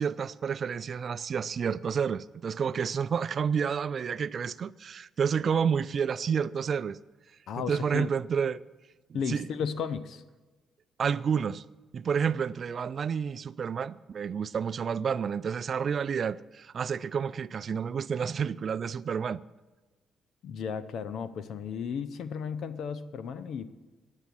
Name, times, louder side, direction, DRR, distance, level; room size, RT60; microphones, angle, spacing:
voice 1, 0.0-7.0 7.7-8.6 9.1-9.5 11.0-11.6 11.9-19.4, right 7 dB, 50° right, 0.4 m, -30 dB
voice 2, 7.5-8.1 9.1-10.2 20.4-23.7, left 7 dB, 70° left, 0.7 m, -34 dB
9.9 x 8.2 x 9.2 m
cardioid pair, 90°, 0 cm